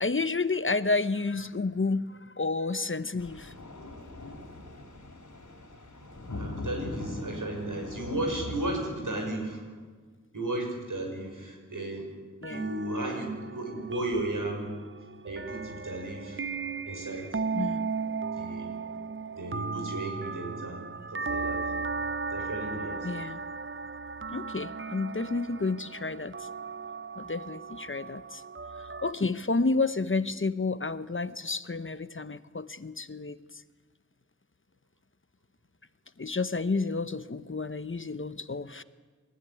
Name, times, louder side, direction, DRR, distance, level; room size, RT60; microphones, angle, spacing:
voice 1, 0.0-3.9 12.4-12.7 17.5-17.9 23.0-23.4 24.3-26.5 27.2-28.4 29.0-33.6 36.2-38.8, left 3 dB, 40° left, 14 dB, 0.9 m, -30 dB
sound 1, 3.2-9.0, left 2 dB, 70° left, 3.4 m, -41 dB
voice 2, 6.3-9.7 10.3-12.1 12.5-14.8 15.2-16.4 16.8-17.4 18.4-18.7 19.4-20.8 21.1-21.7 22.3-23.1, right 1 dB, 90° right, 1 dB, 6.0 m, -34 dB
sound 2, 12.4-29.1, right 4 dB, 40° right, 0.7 m, -36 dB
27.0 x 14.0 x 9.8 m, 1.4 s
wide cardioid pair, 50°, 31 cm